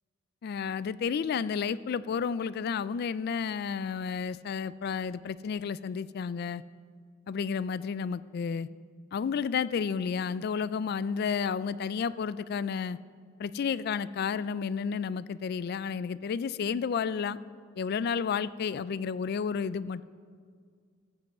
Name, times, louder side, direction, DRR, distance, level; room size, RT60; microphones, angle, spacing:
voice 1, 0.4-6.6 7.3-8.7 9.1-13.0 13.4-17.4 17.8-20.0, left 6 dB, 55° left, 17 dB, 0.3 m, -31 dB
14.5 x 5.5 x 7.2 m, 2.1 s
head